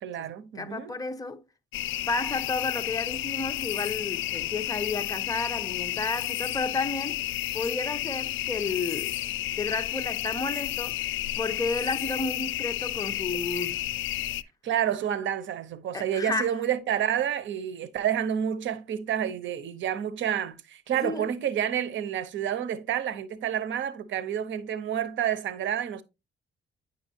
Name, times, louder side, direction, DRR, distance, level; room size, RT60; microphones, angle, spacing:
voice 1, 0.0-0.9 14.6-26.0, right 9 dB, 75° right, 0.9 m, -29 dB
voice 2, 0.5-1.4 2.1-7.2 7.5-9.2 9.6-11.0 11.4-14.0 15.9-16.5 21.0-21.3, left 3 dB, 20° left, 1.0 m, -32 dB
sound 1, 1.7-14.4, left 14 dB, 75° left, 0.4 m, -31 dB
9.6 x 5.6 x 2.8 m
cardioid pair, 90°, 20 cm